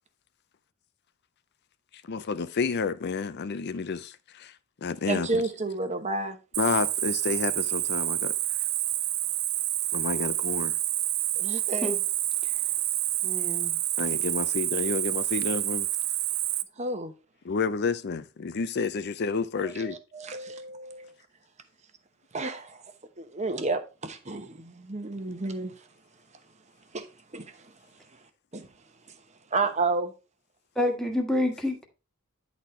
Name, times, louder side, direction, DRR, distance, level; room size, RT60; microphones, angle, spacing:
voice 1, 2.1-4.5 4.8-5.4 6.6-8.3 9.9-10.7 14.0-15.9 17.4-20.0, left 5 dB, 50° left, 0.5 m, -30 dB
voice 2, 5.0-6.4 11.4-11.9 16.8-17.1 19.6-21.1 22.3-22.8 23.2-25.9 26.9-27.1 27.3-27.7 28.1-28.2 28.5-28.7 29.1-29.2 29.5-30.1, right 3 dB, 30° right, 1.0 m, -31 dB
Cricket, 6.5-16.6, right 14 dB, 65° right, 0.6 m, -28 dB
voice 3, 13.2-13.7 30.7-31.9, left 1 dB, ahead, 1.4 m, -28 dB
10.0 x 4.2 x 4.4 m
head